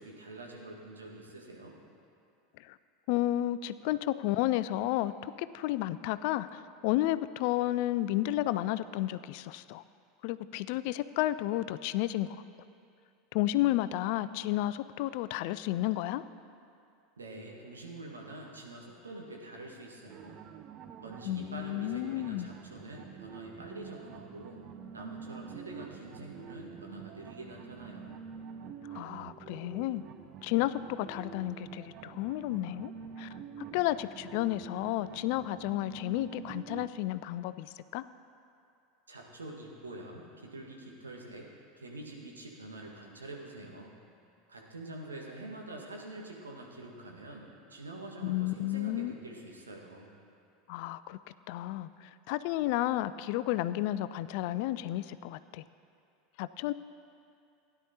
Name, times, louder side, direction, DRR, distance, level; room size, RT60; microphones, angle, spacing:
voice 1, 0.0-1.7 17.2-20.4 21.0-24.6 24.9-28.2 39.1-41.5 41.8-43.9 44.5-50.1, right 2 dB, 80° right, -1 dB, 1.5 m, -46 dB
voice 2, 3.1-9.8 10.2-12.4 13.3-16.2 21.2-22.5 28.9-30.0 30.4-32.9 33.2-33.3 33.7-38.1 48.2-49.1 50.7-51.2 51.5-55.6 56.4-56.7, left 15 dB, 55° left, 15 dB, 0.3 m, -32 dB
sound 1, 20.1-36.9, right 7 dB, 40° right, 0.5 m, -47 dB
16.5 x 10.0 x 2.8 m, 2.5 s
figure-of-eight pair, 80°, 0 cm